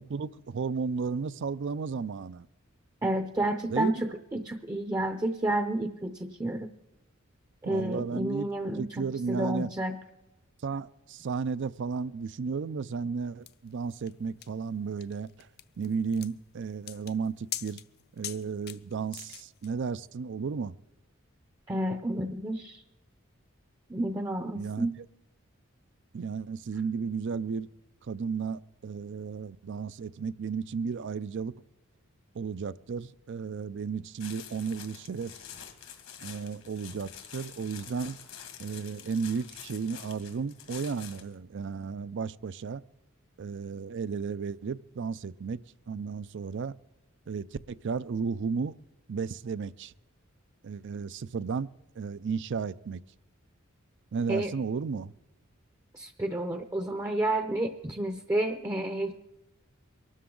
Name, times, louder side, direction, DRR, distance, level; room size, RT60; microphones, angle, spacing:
voice 1, 0.0-2.5 3.7-3.9 7.6-8.5 8.8-9.7 10.6-15.5 15.8-17.8 18.1-20.8 24.5-24.9 26.1-27.7 28.0-31.5 32.3-35.3 36.2-38.2 38.6-42.8 43.4-45.6 45.9-46.7 47.3-48.7 49.1-49.9 50.6-51.7 52.0-53.0 54.1-55.1, right 5 dB, 60° right, 0.4 m, -33 dB
voice 2, 3.0-6.7 7.6-10.0 21.7-22.8 23.9-24.9 54.3-54.5 55.9-59.1, right 1 dB, 15° right, 0.6 m, -30 dB
sound 1, 13.5-19.7, left 12 dB, 50° left, 0.6 m, -43 dB
sound 2, 34.2-41.3, left 8 dB, 80° left, 1.9 m, -47 dB
23.0 x 12.5 x 3.8 m
head